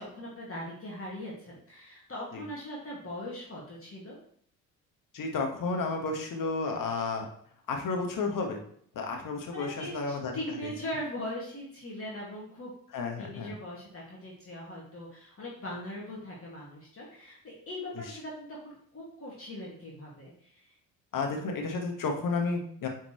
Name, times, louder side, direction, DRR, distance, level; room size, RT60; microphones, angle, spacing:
voice 1, 0.0-4.2 9.5-12.7 13.2-20.7, left 1 dB, 30° left, -4 dB, 2.3 m, -40 dB
voice 2, 5.1-7.3 7.7-8.6 8.9-10.3 12.9-13.5 21.1-22.9, left 3 dB, 45° left, 3 dB, 1.6 m, -32 dB
9.1 x 4.4 x 3.2 m, 0.64 s
figure-of-eight pair, 50°, 45 cm